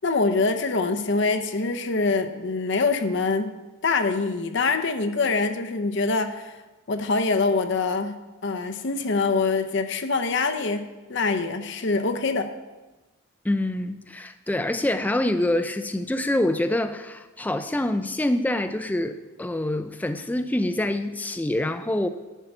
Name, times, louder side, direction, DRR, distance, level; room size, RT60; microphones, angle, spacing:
voice 1, 0.0-3.5 3.8-6.6 6.9-8.1 8.4-12.5, left 3 dB, 55° left, 8 dB, 0.6 m, -24 dB
voice 2, 13.4-22.1, left 1 dB, 10° left, 9 dB, 0.3 m, -26 dB
11.0 x 4.5 x 7.8 m, 1.2 s
head